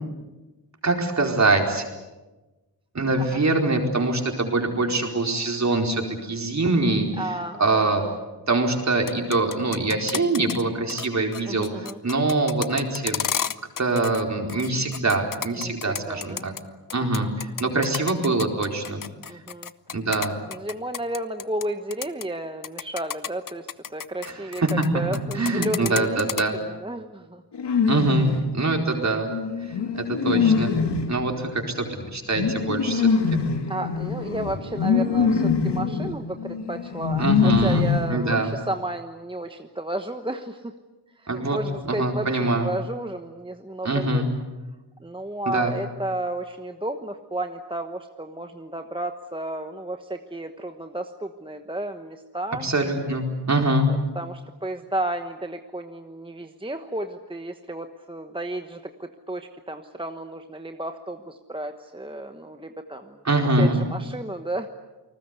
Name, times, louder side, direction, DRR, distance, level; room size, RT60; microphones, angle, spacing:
voice 1, 0.8-1.8 2.9-8.1 8.5-13.2 13.8-16.5 16.9-19.0 19.9-20.3 24.2-24.9 25.3-26.6 27.9-29.3 29.9-30.7 31.1-31.8 32.1-33.4 37.2-37.8 38.1-38.6 41.3-41.6 41.8-42.7 43.8-44.3 45.5-45.7 52.6-53.9 63.2-63.8, right 2 dB, 40° right, 3 dB, 4.4 m, -24 dB
voice 2, 7.2-8.2 11.4-12.0 15.6-16.5 17.0-17.3 19.3-19.7 20.5-26.2 26.5-27.4 33.7-40.7 41.2-44.2 45.0-52.7 54.1-63.2 63.6-64.7, right 1 dB, 10° right, 6 dB, 1.2 m, -32 dB
sound 1, 8.9-10.6 10.9-11.1 11.3-14.2 14.5-16.6 16.9-21.6 21.9-22.2 22.6-24.9 25.1-26.4, left 8 dB, 50° left, 0.8 m, -31 dB
sound 2, 27.5-28.5 29.3-38.4, left 5 dB, 75° left, 2.4 m, -24 dB
28.5 x 20.0 x 8.3 m, 1.1 s
wide cardioid pair, 100°, 42 cm